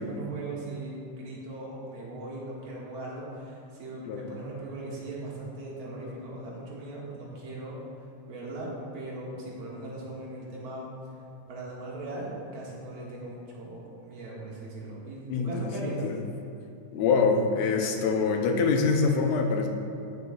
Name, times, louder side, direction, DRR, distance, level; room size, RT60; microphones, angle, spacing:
voice 1, 0.0-10.8 11.5-16.0, right 2 dB, 45° right, -5 dB, 2.3 m, -39 dB
voice 2, 15.3-16.2 16.9-19.7, left 4 dB, 75° left, 3 dB, 1.7 m, -25 dB
18.0 x 6.5 x 2.4 m, 2.9 s
omnidirectional pair, 3.8 m